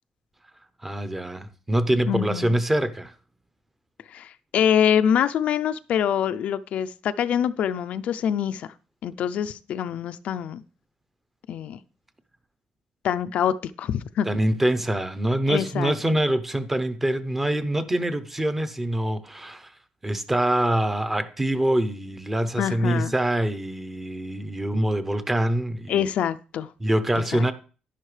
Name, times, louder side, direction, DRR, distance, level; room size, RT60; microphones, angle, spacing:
voice 1, 0.8-3.1 14.2-19.7 20.0-26.1 26.8-27.5, right 1 dB, 10° right, 0.7 m, -25 dB
voice 2, 2.1-2.6 4.1-8.7 9.0-10.6 11.5-11.8 13.0-14.3 15.5-15.9 22.6-23.1 25.9-26.7 27.2-27.4, left 9 dB, 55° left, 0.4 m, -25 dB
11.0 x 10.5 x 3.3 m
cardioid pair, 165°, 3 cm